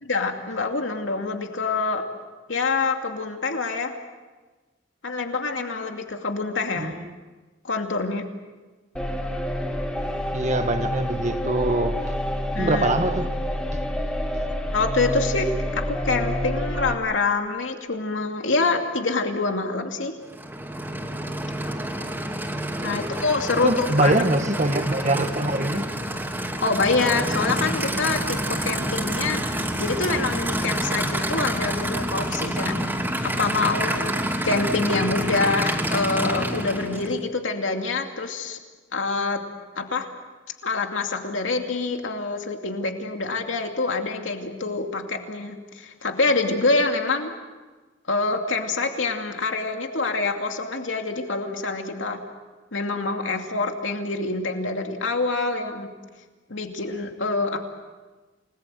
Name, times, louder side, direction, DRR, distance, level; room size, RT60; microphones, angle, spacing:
voice 1, 0.0-2.0 2.5-3.9 5.0-6.9 7.6-8.3 12.5-12.9 14.7-20.2 22.8-24.2 26.6-32.9 33.2-34.1 34.4-38.6 38.9-39.4 39.8-40.1 40.6-47.3 48.1-52.2 52.7-55.9 56.5-57.6, left 3 dB, 85° left, 2.6 m, -26 dB
voice 2, 6.8-7.1 10.3-12.0 12.6-13.3 13.7-13.8 14.4-14.5 23.6-25.9, right 2 dB, 40° right, 1.9 m, -23 dB
sound 1, 9.0-17.0, equal, 5° left, 3.1 m, -28 dB
Aircraft / Idling, 20.2-37.2, right 1 dB, 10° right, 2.9 m, -28 dB
29.5 x 20.0 x 7.8 m
head